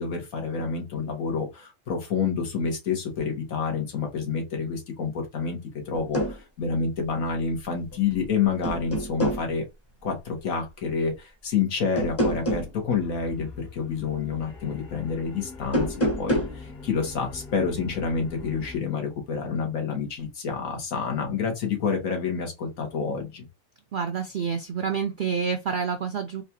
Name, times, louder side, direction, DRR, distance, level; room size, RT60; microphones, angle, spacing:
voice 1, 0.0-5.6 5.9-9.6 10.0-23.5, left 5 dB, 90° left, 1.6 m, -28 dB
sound 1, 5.9-6.4 7.9-8.3 8.6-9.5 12.0-12.7 15.6-16.6, equal, 15° left, 0.6 m, -26 dB
sound 2, 12.9-18.8, left 4 dB, 60° left, 2.0 m, -43 dB
voice 2, 23.9-26.4, right 6 dB, 70° right, 0.4 m, -28 dB
4.0 x 2.4 x 2.7 m
omnidirectional pair, 1.4 m